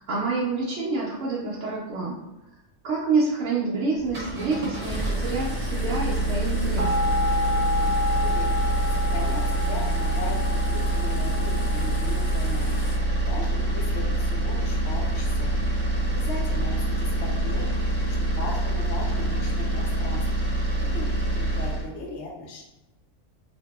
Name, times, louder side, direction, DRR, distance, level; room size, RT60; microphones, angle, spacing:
voice 1, 0.0-2.2 2.8-7.2, right 3 dB, 75° right, -8 dB, 1.0 m, -27 dB
sound 1, 4.0-21.9, right 1 dB, 45° right, 0.9 m, -26 dB
sound 2, 4.8-13.0, left 3 dB, 30° left, 1.1 m, -41 dB
sound 3, 6.8-18.3, left 2 dB, 25° right, 0.4 m, -31 dB
voice 2, 7.8-8.5 8.9-17.8 18.1-20.2 20.8-21.1 21.3-22.6, left 2 dB, 65° left, -1 dB, 0.9 m, -38 dB
2.8 x 2.6 x 2.3 m, 0.98 s
omnidirectional pair, 1.3 m